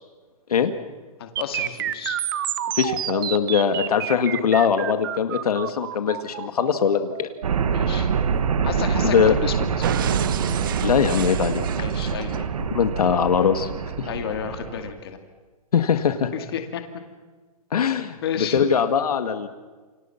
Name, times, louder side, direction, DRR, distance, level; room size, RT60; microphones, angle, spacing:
voice 1, 1.2-2.2 7.7-8.1 8.6-9.9 11.7-12.5 14.1-15.2 16.3-16.8 18.2-18.6, left 8 dB, 40° left, 6 dB, 2.3 m, -31 dB
sound 1, 1.4-9.3 9.8-12.4, right 10 dB, 35° right, 1.0 m, -31 dB
voice 2, 2.8-7.3 9.0-9.4 10.8-11.6 12.7-13.7 14.0-14.1 15.7-16.3 17.7-19.5, left 7 dB, 75° left, 8 dB, 2.0 m, -21 dB
sound 2, 7.4-14.9, right 6 dB, 65° right, 1.9 m, -25 dB
28.5 x 26.0 x 5.9 m, 1.4 s
hypercardioid pair, 175°, 19 cm